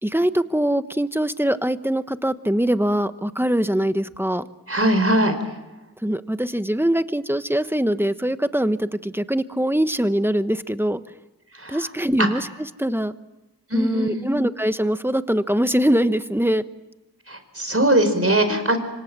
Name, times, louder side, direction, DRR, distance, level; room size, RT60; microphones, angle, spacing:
voice 1, 0.0-4.5 6.0-11.0 11.7-12.5 12.8-13.1 13.7-16.6, right 1 dB, 5° right, 11 dB, 1.1 m, -22 dB
voice 2, 4.7-5.3 11.5-11.8 12.2-12.3 13.7-14.3 17.3-18.8, right 1 dB, 40° right, 7 dB, 4.7 m, -20 dB
26.5 x 25.5 x 7.5 m, 1.0 s
wide cardioid pair, 45°, 37 cm